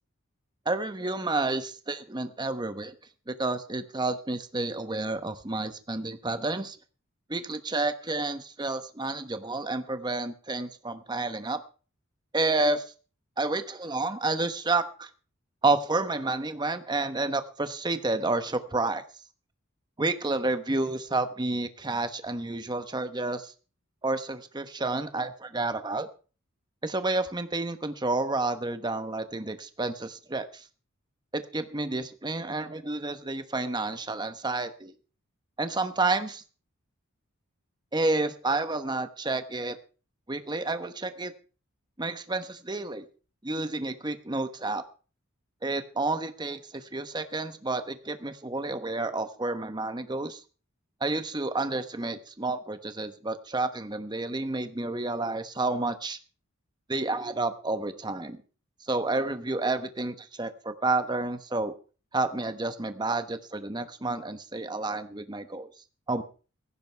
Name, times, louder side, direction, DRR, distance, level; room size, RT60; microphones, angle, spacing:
voice 1, 0.7-2.9 3.3-6.8 7.3-11.6 12.3-12.8 13.4-15.1 15.6-19.0 20.0-23.5 24.0-26.1 26.8-30.6 31.3-34.9 35.6-36.4 37.9-39.8 40.3-41.3 42.0-43.0 43.4-44.8 45.6-50.4 51.0-56.2 56.9-58.4 58.9-61.7 62.1-65.7 66.1-66.2, right 2 dB, 20° right, 10 dB, 1.1 m, -30 dB
17.0 x 15.5 x 3.4 m, 0.36 s
head